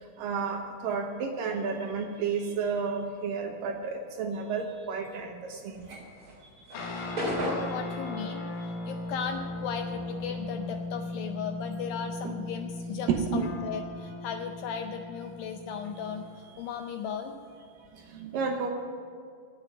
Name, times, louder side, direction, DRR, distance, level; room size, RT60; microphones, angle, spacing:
voice 1, 0.2-6.0 6.7-6.8 7.3-7.4 8.1-8.7 12.2-12.4 13.1-13.5 18.1-18.7, right 5 dB, 75° right, 3 dB, 2.3 m, -32 dB
sound 1, 5.7-10.5 10.7-12.7, equal, 25° right, 2.7 m, -37 dB
sound 2, 6.7-16.4, left 2 dB, 65° left, 2.6 m, -38 dB
voice 2, 7.2-17.4, left 6 dB, 80° left, 6 dB, 2.1 m, -36 dB
10.5 x 8.9 x 9.2 m, 2.1 s
omnidirectional pair, 4.7 m